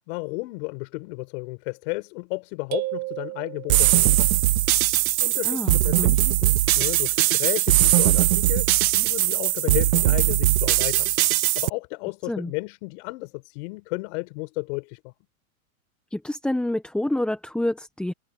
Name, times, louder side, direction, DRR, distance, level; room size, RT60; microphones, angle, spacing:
voice 1, 0.0-4.3 5.2-11.1 11.6-15.1, left 30 dB, 55° left, 6.2 m, -33 dB
sound 1, 2.7-4.2, right 21 dB, 40° right, 2.1 m, -33 dB
sound 2, 3.7-11.7, right 15 dB, 85° right, 0.7 m, -20 dB
voice 2, 5.4-6.2 12.2-12.5 16.1-18.1, left 1 dB, ahead, 1.1 m, -28 dB
hypercardioid pair, 125°, 41 cm